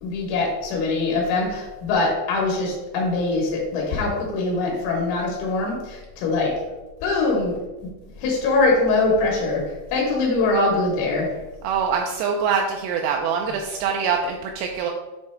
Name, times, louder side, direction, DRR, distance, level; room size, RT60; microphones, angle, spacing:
voice 1, 0.0-6.5 7.0-7.5 7.8-7.9 8.2-9.6 9.9-11.4, left 3 dB, 85° left, -2 dB, 3.7 m, -22 dB
voice 2, 11.6-14.9, right 6 dB, 85° right, 1 dB, 2.3 m, -24 dB
8.1 x 3.2 x 4.4 m, 1.1 s
omnidirectional pair, 5.2 m